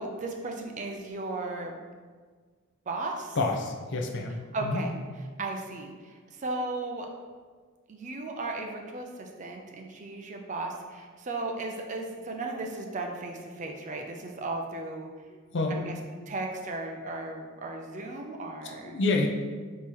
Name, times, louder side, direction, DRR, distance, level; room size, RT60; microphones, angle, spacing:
voice 1, 0.0-1.8 2.9-3.4 4.5-4.9 5.4-7.1 7.9-15.1 15.7-16.0 16.3-19.0, right 2 dB, 35° right, 2 dB, 0.4 m, -35 dB
voice 2, 3.4-4.8 15.5-15.8 18.8-19.3, left 3 dB, 50° left, 2 dB, 0.5 m, -28 dB
3.6 x 3.0 x 4.4 m, 1.5 s
head